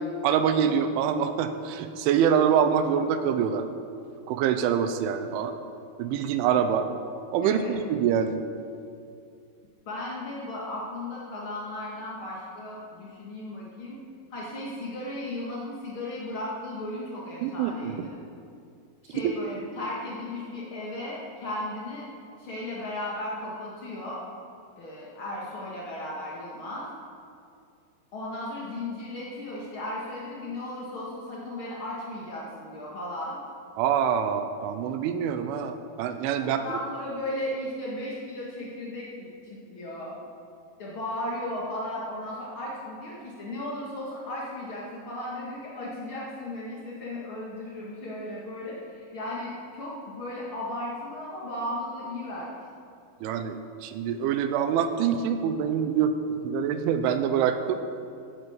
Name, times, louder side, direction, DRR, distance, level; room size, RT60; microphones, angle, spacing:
voice 1, 0.2-3.7 4.3-5.6 6.0-6.9 7.3-8.4 17.4-18.0 19.2-19.3 33.8-36.6 53.2-56.2 56.4-57.8, right 8 dB, 85° right, 9 dB, 3.2 m, -25 dB
voice 2, 7.4-7.8 9.8-14.0 14.3-18.1 19.0-22.1 22.4-24.2 24.8-26.9 28.1-33.4 36.4-40.2 40.8-52.6, left 1 dB, 70° left, -5 dB, 1.2 m, -35 dB
13.5 x 9.1 x 8.0 m, 2.4 s
omnidirectional pair, 5.5 m